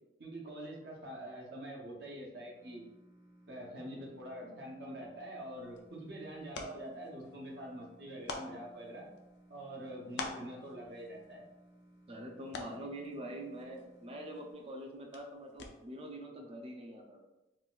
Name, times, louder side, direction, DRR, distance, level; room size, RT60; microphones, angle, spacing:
voice 1, 0.2-2.9 3.5-9.1 9.5-11.4, right 1 dB, 65° right, -2 dB, 0.7 m, -45 dB
sound 1, 2.5-14.5, right 1 dB, 80° right, 1.3 m, -61 dB
sound 2, 5.4-16.1, left 3 dB, 75° left, 0.4 m, -49 dB
voice 2, 12.1-17.2, right 1 dB, 30° right, 1 dB, 0.4 m, -45 dB
3.8 x 2.3 x 2.4 m, 0.99 s
head